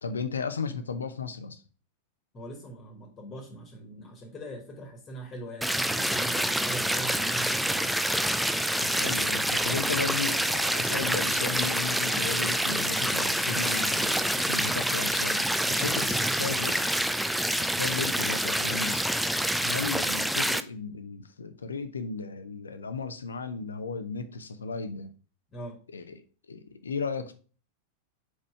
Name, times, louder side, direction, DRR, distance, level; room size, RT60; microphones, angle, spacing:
voice 1, 0.0-1.6 8.8-16.7 17.6-19.0 19.6-25.1 25.9-26.2 26.5-27.3, left 5 dB, 70° left, 0.7 m, -35 dB
voice 2, 2.3-8.0 15.7-16.7 19.9-20.1 25.5-25.8, right 1 dB, 20° left, 1.7 m, -41 dB
sound 1, 5.6-20.6, right 1 dB, ahead, 0.4 m, -27 dB
4.8 x 4.5 x 4.7 m
figure-of-eight pair, 90°, 0 cm